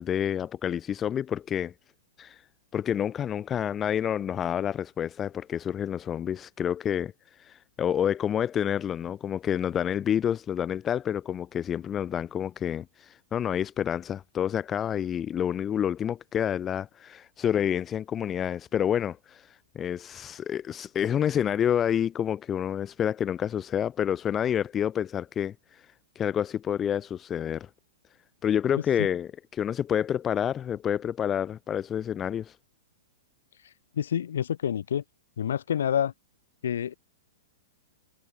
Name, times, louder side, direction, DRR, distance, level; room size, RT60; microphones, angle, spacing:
voice 1, 0.0-1.7 2.2-2.4 2.7-7.1 7.4-25.8 26.2-27.7 28.4-32.5, left 9 dB, 10° left, 0.3 m, -28 dB
voice 2, 33.9-35.0 35.4-36.1 36.6-36.9, left 9 dB, 70° left, 2.2 m, -27 dB
hypercardioid pair, 180°, 0 cm